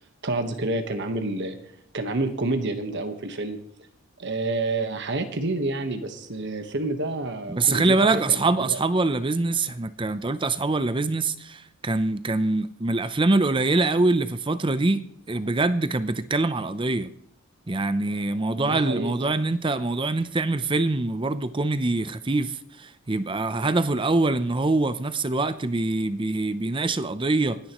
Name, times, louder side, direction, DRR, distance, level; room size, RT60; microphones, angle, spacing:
voice 1, 0.2-1.6 1.9-3.6 4.2-8.8 18.6-19.4, right 2 dB, 55° right, 1.3 m, -29 dB
voice 2, 7.5-15.0 15.3-17.1 17.7-27.6, right 2 dB, 25° right, 0.6 m, -24 dB
27.0 x 10.5 x 3.1 m
head